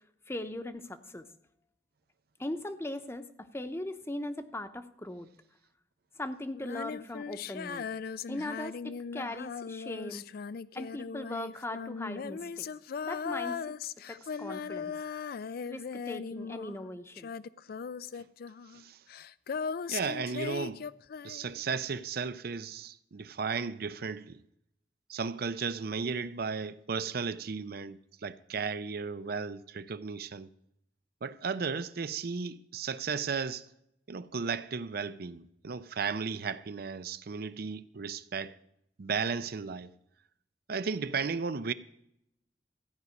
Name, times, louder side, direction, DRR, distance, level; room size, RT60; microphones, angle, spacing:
voice 1, 0.3-1.3 2.4-5.3 6.2-7.9 8.3-10.3 10.7-12.7 13.0-13.7 14.1-14.9 15.7-17.3, left 1 dB, 15° left, 0.8 m, -39 dB
Female singing, 6.5-16.9 17.1-21.6, left 6 dB, 55° left, 0.4 m, -38 dB
voice 2, 19.9-20.9 21.2-24.4 25.1-30.5 31.2-33.7 34.1-38.6 39.0-39.9 40.7-41.7, right 5 dB, 60° right, 0.5 m, -35 dB
14.5 x 5.3 x 9.5 m
head